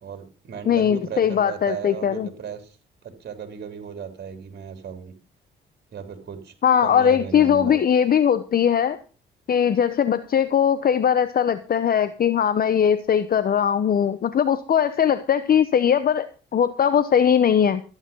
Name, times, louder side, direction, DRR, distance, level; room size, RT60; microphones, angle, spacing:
voice 1, 0.0-2.8 3.0-5.1 5.9-6.5 6.8-7.8, right 7 dB, 55° right, 7 dB, 3.3 m, -36 dB
voice 2, 0.7-2.3 6.6-9.0 9.5-17.8, left 8 dB, 50° left, 12 dB, 0.9 m, -20 dB
14.0 x 10.0 x 5.4 m, 0.35 s
cardioid pair, 90°, 20 cm